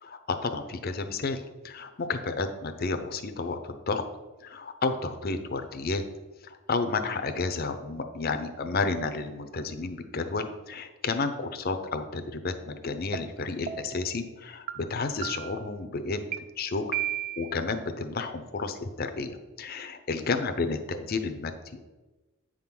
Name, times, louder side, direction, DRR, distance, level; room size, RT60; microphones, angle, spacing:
voice 1, 0.0-4.0 4.4-6.0 6.4-17.0 17.4-21.8, left 3 dB, 45° left, 7 dB, 0.6 m, -31 dB
sound 1, 13.1-13.2 13.7-14.0 14.7-14.8 15.2-15.7 16.3-16.4 16.9-17.5, right 12 dB, 40° right, 0.4 m, -33 dB
8.6 x 3.7 x 5.9 m, 1.2 s
head